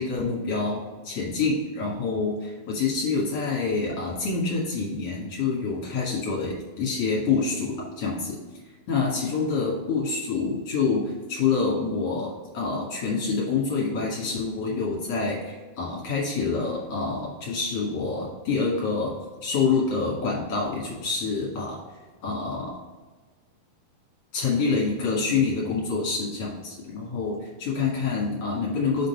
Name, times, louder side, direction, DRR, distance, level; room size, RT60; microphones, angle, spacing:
voice 1, 0.0-8.4 8.9-21.8 22.2-22.8 24.3-29.1, left 4 dB, 50° left, -4 dB, 2.2 m, -27 dB
5.9 x 3.9 x 5.6 m, 1.3 s
omnidirectional pair, 4.3 m